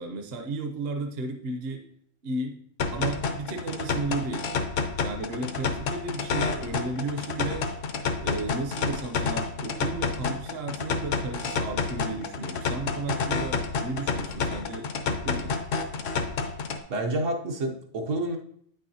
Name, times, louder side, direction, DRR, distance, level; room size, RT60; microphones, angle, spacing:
voice 1, 0.0-1.8 2.2-2.6 2.9-4.5 5.0-7.7 8.2-15.6, right 3 dB, 55° right, 5 dB, 0.9 m, -34 dB
sound 1, 2.8-16.8, left 5 dB, 75° left, 1.0 m, -29 dB
voice 2, 16.9-18.4, right 1 dB, 75° right, 2 dB, 1.3 m, -28 dB
8.9 x 6.2 x 2.8 m, 0.65 s
omnidirectional pair, 1.3 m